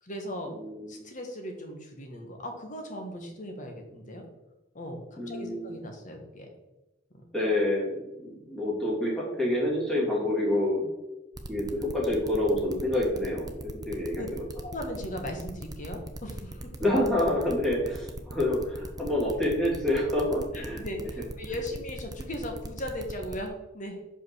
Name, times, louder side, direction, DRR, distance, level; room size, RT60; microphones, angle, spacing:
voice 1, 0.0-0.5 0.9-4.2 4.7-6.5 7.1-7.2 14.2-14.3 14.6-16.7 20.5-24.0, left 1 dB, 45° left, 3 dB, 1.4 m, -38 dB
voice 2, 0.5-0.9 5.2-5.7 7.3-10.9 11.5-14.4 16.8-20.8, left 1 dB, 5° left, -6 dB, 2.9 m, -27 dB
sound 1, 11.4-23.5, right 1 dB, 20° right, 0.7 m, -40 dB
5.4 x 5.3 x 6.3 m, 1.0 s
head